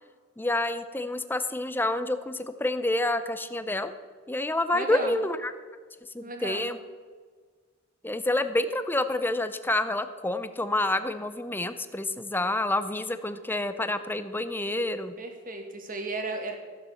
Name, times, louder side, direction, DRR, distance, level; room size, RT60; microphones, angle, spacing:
voice 1, 0.4-3.9 4.3-5.5 6.1-6.8 8.0-15.1, left 2 dB, 10° left, 11 dB, 0.6 m, -28 dB
voice 2, 4.7-5.2 6.2-6.7 15.2-16.5, right 2 dB, 40° right, 4 dB, 1.9 m, -35 dB
15.0 x 7.3 x 7.1 m, 1.5 s
head